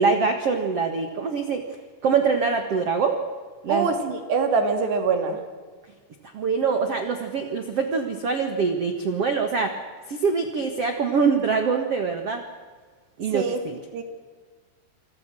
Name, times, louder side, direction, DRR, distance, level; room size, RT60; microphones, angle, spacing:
voice 1, 0.0-1.6 2.0-3.2 3.6-3.9 6.3-9.7 10.1-12.4 13.2-13.8, right 5 dB, 80° right, 6 dB, 1.3 m, -24 dB
voice 2, 3.7-5.4 13.3-13.6 13.9-14.0, right 4 dB, 60° right, 6 dB, 4.5 m, -24 dB
28.0 x 23.5 x 6.3 m, 1.5 s
omnidirectional pair, 5.7 m